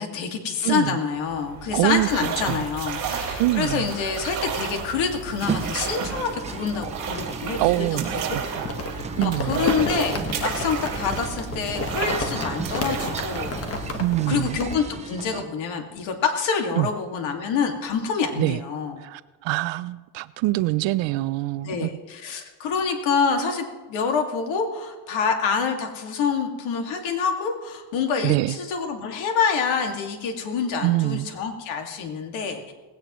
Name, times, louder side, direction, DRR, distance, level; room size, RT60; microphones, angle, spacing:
voice 1, 0.0-8.2 9.2-19.0 21.6-32.7, left 6 dB, 70° left, 4 dB, 2.2 m, -27 dB
voice 2, 0.6-1.0 1.7-2.1 2.5-2.7 3.4-3.9 7.6-8.8 9.2-9.7 14.0-14.6 16.8-16.9 18.4-18.6 19.0-22.0 28.2-28.6 30.8-31.3, right 18 dB, 65° right, 16 dB, 0.5 m, -24 dB
sound 1, 1.2-14.9, right 6 dB, 40° right, 3.8 m, -32 dB
sound 2, 5.4-15.4, right 5 dB, 15° right, 0.4 m, -35 dB
Crumpling crinkling, 8.7-14.8, left 3 dB, 30° left, 1.4 m, -31 dB
19.0 x 17.0 x 3.1 m, 1.3 s
cardioid pair, 165°, 48 cm